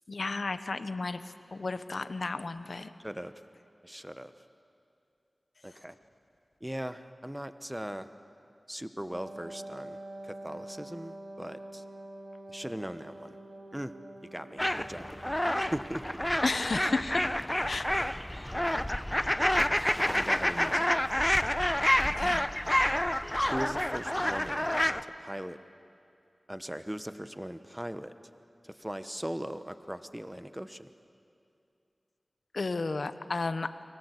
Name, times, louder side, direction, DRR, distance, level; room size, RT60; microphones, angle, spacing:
voice 1, 0.1-1.2 1.5-2.9 16.4-17.3 17.7-17.9 22.2-22.5 32.5-33.7, left 3 dB, 75° left, 11 dB, 1.1 m, -32 dB
voice 2, 3.8-4.3 5.6-6.0 6.6-8.1 8.7-11.8 12.5-13.4 13.7-13.9 14.3-15.1 15.6-16.0 19.6-19.8 20.1-21.3 23.5-24.7 25.0-25.6 26.5-28.1 28.6-30.9, equal, 10° right, 11 dB, 1.1 m, -39 dB
Wind instrument woodwind instrument, 9.1-17.2, right 1 dB, 65° right, 2.7 m, -46 dB
sound 1, 14.6-25.0, left 1 dB, 15° left, 0.8 m, -28 dB
29.5 x 23.5 x 8.3 m, 2.6 s
wide cardioid pair, 45°, 0 cm